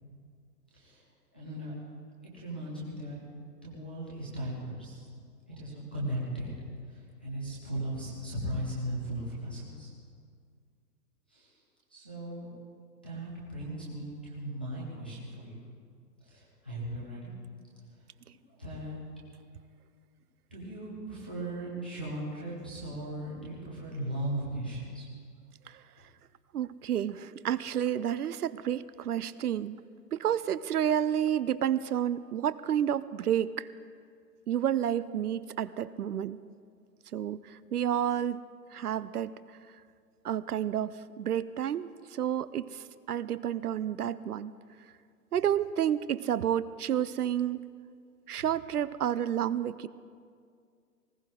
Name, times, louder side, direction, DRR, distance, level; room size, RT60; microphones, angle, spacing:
voice 1, 1.3-1.7 2.2-3.3 3.6-5.1 5.5-6.6 6.9-9.9 11.3-11.5 11.9-12.5 13.0-15.6 16.2-17.3 18.6-19.0 20.5-25.1 48.4-48.5, right 1 dB, 5° left, -8 dB, 0.5 m, -37 dB
voice 2, 26.5-29.8 30.1-33.7 34.5-36.4 37.1-38.4 38.7-39.3 40.2-44.5 45.3-47.7 48.3-49.9, right 10 dB, 65° right, 17 dB, 0.6 m, -30 dB
19.5 x 17.0 x 3.7 m, 2.2 s
hypercardioid pair, 155°, 50 cm